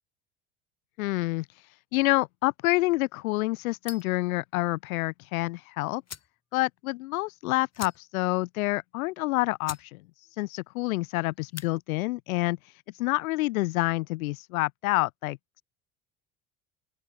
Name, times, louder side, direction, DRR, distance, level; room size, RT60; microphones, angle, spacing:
voice 1, 1.0-6.0 6.5-15.6, left 21 dB, 80° left, 1.6 m, -28 dB
sound 1, 3.8-4.2 5.6-5.7 6.0-6.4 6.8-6.9 7.1-7.2 7.7-8.3 8.7-8.8 9.3-9.4 9.6-9.9 10.2-10.6 11.4-11.7, left 7 dB, 40° left, 7.8 m, -43 dB
open air
hypercardioid pair, 70°, 41 cm